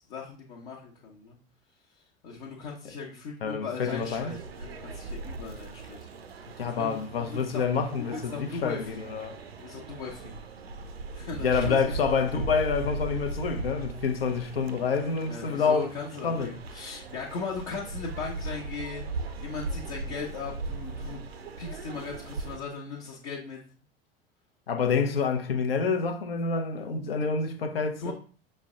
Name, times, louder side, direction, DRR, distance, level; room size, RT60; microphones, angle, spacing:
voice 1, 0.1-1.4 2.2-6.0 6.7-7.6 8.0-9.0 9.6-10.4 11.1-11.9 15.2-19.1 19.4-21.2 21.6-23.6 28.0-28.1, left 4 dB, 55° left, 0.9 m, -38 dB
voice 2, 3.4-4.3 6.6-9.4 11.4-15.9 16.2-16.5 24.7-28.1, left 5 dB, 75° left, 0.6 m, -27 dB
sound 1, 3.9-22.6, right 3 dB, 85° right, 0.5 m, -38 dB
5.6 x 2.1 x 3.7 m
figure-of-eight pair, 80°, 30 cm